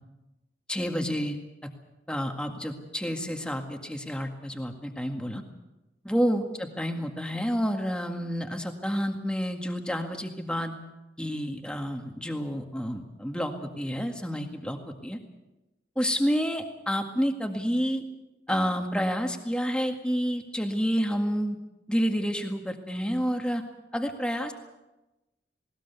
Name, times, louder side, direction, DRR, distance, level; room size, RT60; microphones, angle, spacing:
voice 1, 0.7-1.7 2.1-5.4 6.0-10.7 11.2-15.2 16.0-18.0 18.5-21.6 21.9-23.6 23.9-24.5, equal, 5° left, 4 dB, 1.9 m, -29 dB
19.5 x 19.5 x 8.2 m, 1.0 s
head